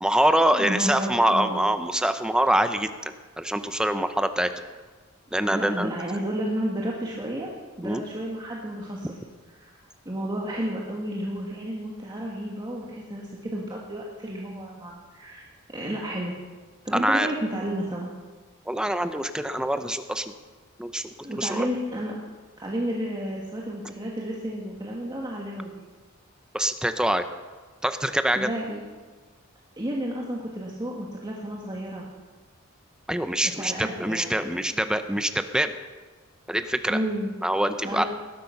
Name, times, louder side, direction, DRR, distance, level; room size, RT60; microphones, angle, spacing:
voice 1, 0.0-4.5 5.3-5.9 7.8-8.0 16.9-17.3 18.7-20.3 20.8-21.7 26.5-27.2 27.8-28.5 33.1-35.7 36.5-37.0 37.4-38.0, right 1 dB, 5° right, 9 dB, 0.7 m, -25 dB
voice 2, 0.5-1.6 5.5-7.5 7.8-9.2 9.5-9.8 10.1-15.5 15.7-16.3 16.8-18.1 21.2-22.2 22.6-25.7 28.4-28.8 29.8-32.0 33.4-34.6 36.9-37.3 37.8-38.1, equal, 20° right, -3 dB, 1.7 m, -31 dB
19.5 x 12.0 x 5.8 m, 1.4 s
head